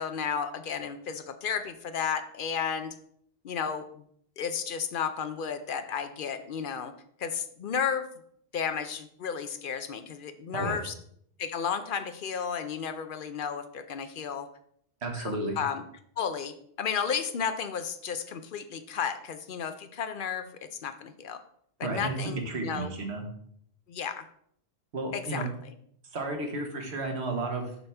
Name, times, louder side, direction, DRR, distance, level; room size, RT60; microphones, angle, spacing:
voice 1, 0.0-2.9 3.4-4.0 4.4-6.9 7.2-8.1 8.5-10.9 11.4-14.5 15.2-15.8 16.2-21.4 21.9-22.9 23.9-24.3 25.1-25.4, left 7 dB, 60° left, 9 dB, 0.7 m, -33 dB
voice 2, 15.0-15.6 21.8-23.2 24.9-25.5 26.0-27.8, right 2 dB, 90° right, 3 dB, 1.5 m, -32 dB
6.9 x 5.7 x 3.4 m, 0.67 s
omnidirectional pair, 1.1 m